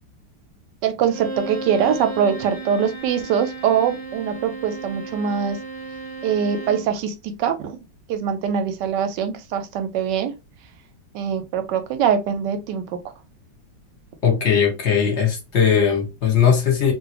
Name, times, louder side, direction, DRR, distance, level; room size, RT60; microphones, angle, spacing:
voice 1, 0.8-5.6 6.2-7.8 8.1-10.3 11.1-13.0, right 8 dB, 75° right, 1.1 m, -23 dB
Bowed string instrument, 1.0-7.0, right 3 dB, 30° right, 0.4 m, -34 dB
voice 2, 14.2-16.9, left 7 dB, 45° left, 1.0 m, -19 dB
2.9 x 2.6 x 2.8 m
omnidirectional pair, 2.1 m